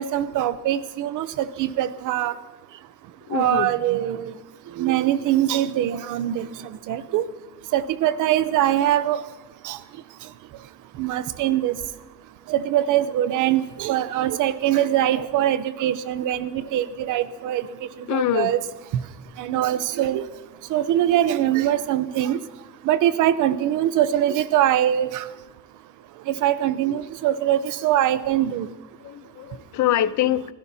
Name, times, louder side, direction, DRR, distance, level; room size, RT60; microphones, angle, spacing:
voice 1, 0.0-2.3 3.3-4.3 4.8-6.5 6.9-7.2 7.7-9.2 9.6-9.8 11.0-11.8 12.5-17.6 18.1-18.6 19.4-20.2 20.7-22.4 22.9-25.2 26.3-28.7, right 12 dB, 90° right, 13 dB, 0.7 m, -22 dB
voice 2, 3.3-3.7 18.1-18.5 29.0-30.5, left 12 dB, 70° left, 15 dB, 0.7 m, -24 dB
25.0 x 16.0 x 2.8 m, 1.1 s
cardioid pair, 90°, 30 cm